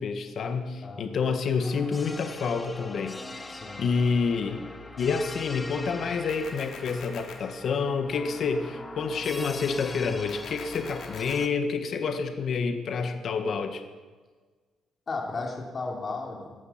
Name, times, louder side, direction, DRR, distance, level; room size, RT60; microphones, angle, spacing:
voice 1, 0.0-3.5 3.8-4.6 5.0-13.8, left 5 dB, 50° left, 6 dB, 1.5 m, -28 dB
sound 1, 1.6-11.5, left 2 dB, 15° left, 1.0 m, -42 dB
voice 2, 3.5-3.8 15.1-16.5, left 3 dB, 35° left, 0 dB, 3.3 m, -34 dB
sound 2, 6.3-7.3 10.3-11.3, left 7 dB, 75° left, 2.7 m, -44 dB
17.0 x 13.5 x 5.9 m, 1.4 s
cardioid pair, 140°, 0 cm